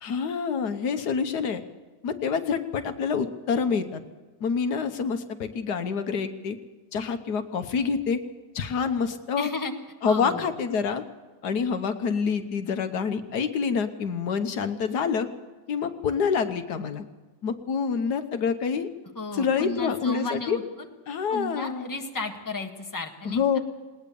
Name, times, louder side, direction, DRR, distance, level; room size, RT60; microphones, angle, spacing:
voice 1, 0.0-1.6 2.0-4.0 4.4-6.6 6.9-8.2 8.5-9.5 10.0-11.0 11.4-15.3 15.7-17.0 17.4-18.9 19.3-20.6 21.1-21.8 23.2-23.6, left 6 dB, 85° left, 9 dB, 1.7 m, -27 dB
voice 2, 9.4-9.7 10.1-10.5 19.1-20.9 21.3-23.6, left 2 dB, 10° left, 3 dB, 1.6 m, -34 dB
20.0 x 19.0 x 7.0 m, 1.3 s
omnidirectional pair, 1.7 m